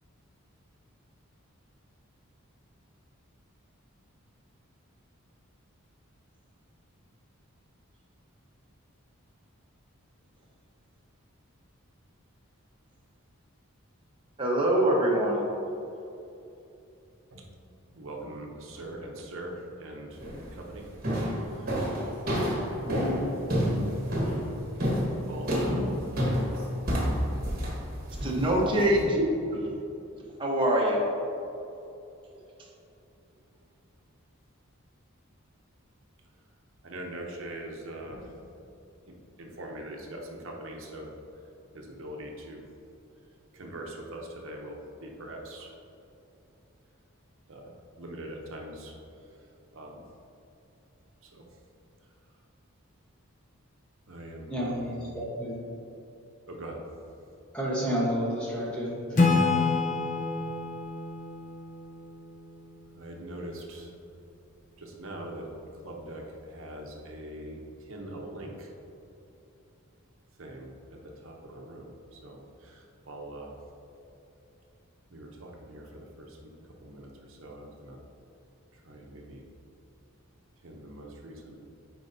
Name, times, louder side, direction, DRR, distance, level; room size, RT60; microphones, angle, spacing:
voice 1, 14.4-15.4 28.2-29.2 29.5-29.6 30.4-31.0, right 1 dB, 25° right, -3 dB, 1.0 m, -24 dB
voice 2, 17.9-20.2 20.5-20.9 21.5-21.8 25.1-26.1 29.3-29.6 36.8-38.3 39.1-41.1 41.7-42.7 43.5-45.8 47.5-49.0 49.7-50.0 51.2-51.5 54.1-54.9 56.5-56.8 62.9-63.9 64.8-68.7 70.4-73.6 75.1-76.5 76.8-78.0 78.7-79.4 80.6-81.6, right 1 dB, 65° right, 0 dB, 0.8 m, -42 dB
sound 1, 20.2-20.5 21.0-29.0, equal, 40° right, 1.4 m, -29 dB
voice 3, 22.8-23.3 54.5-55.7 57.5-59.8, equal, 5° left, -5 dB, 1.0 m, -31 dB
Acoustic guitar / Strum, 59.2-62.7, left 3 dB, 35° left, 0.6 m, -27 dB
9.4 x 4.6 x 2.7 m, 2.9 s
head